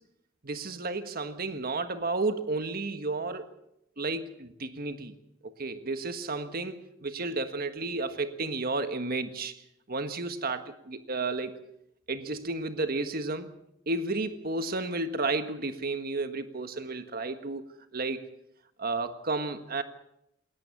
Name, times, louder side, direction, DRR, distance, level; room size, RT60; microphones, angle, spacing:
voice 1, 0.4-3.5 4.0-5.1 5.6-9.5 9.9-11.6 12.1-13.5 13.9-17.6 17.9-18.3 18.8-19.8, right 3 dB, 50° right, 9 dB, 1.5 m, -32 dB
21.0 x 19.0 x 7.3 m, 0.79 s
head